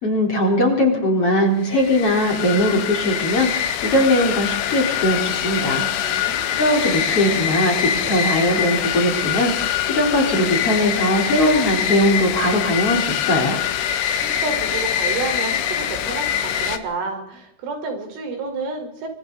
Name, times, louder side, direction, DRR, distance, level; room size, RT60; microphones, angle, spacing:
voice 1, 0.0-5.9 6.6-13.6, left 1 dB, 30° left, 0 dB, 4.6 m, -20 dB
sound 1, 1.7-16.8, left 9 dB, 90° left, 3.9 m, -24 dB
voice 2, 6.0-6.6 14.2-19.1, right 4 dB, 85° right, 4 dB, 7.1 m, -30 dB
28.5 x 24.5 x 4.1 m, 0.77 s
omnidirectional pair, 5.5 m